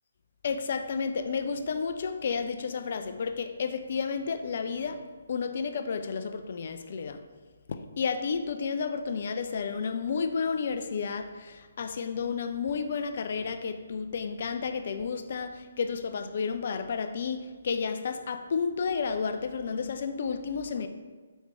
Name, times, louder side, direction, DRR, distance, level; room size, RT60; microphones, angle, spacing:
voice 1, 0.4-5.0 5.3-7.2 7.7-20.9, left 5 dB, 45° left, 8 dB, 0.3 m, -31 dB
4.4 x 3.1 x 3.6 m, 1.4 s
figure-of-eight pair, 135°, 0 cm